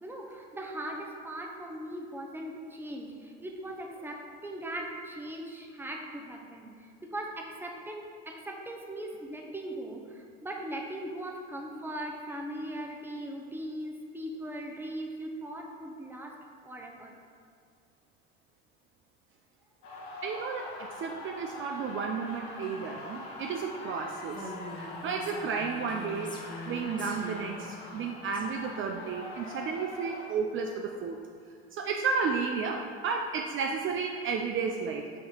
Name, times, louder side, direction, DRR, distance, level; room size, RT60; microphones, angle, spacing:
voice 1, 0.0-16.4 16.6-17.2, right 1 dB, 5° right, 1 dB, 0.8 m, -39 dB
sound 1, 19.8-30.3, left 2 dB, 80° left, 1.1 m, -43 dB
voice 2, 20.2-24.5 24.8-26.3 26.7-31.2 31.7-35.2, right 5 dB, 40° right, 2 dB, 0.5 m, -32 dB
Female speech woman speaking, 24.3-28.4, left 1 dB, 15° left, 1.1 m, -43 dB
6.5 x 2.9 x 5.7 m, 2.2 s
supercardioid pair, 90°, 32 cm